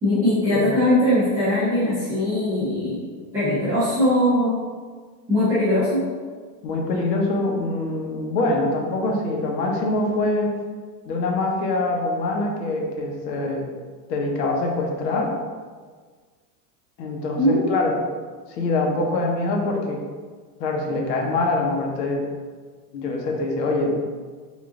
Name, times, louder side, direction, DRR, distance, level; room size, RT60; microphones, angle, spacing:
voice 1, 0.0-3.0 3.3-4.6 5.3-6.0 17.4-17.8, left 1 dB, 5° right, -15 dB, 0.4 m, -20 dB
voice 2, 6.6-10.6 11.0-13.6 14.1-15.3 17.0-17.9 18.5-20.0 20.6-22.2 22.9-23.9, left 2 dB, 85° left, 0 dB, 1.0 m, -24 dB
3.6 x 2.4 x 3.6 m, 1.5 s
supercardioid pair, 175°, 48 cm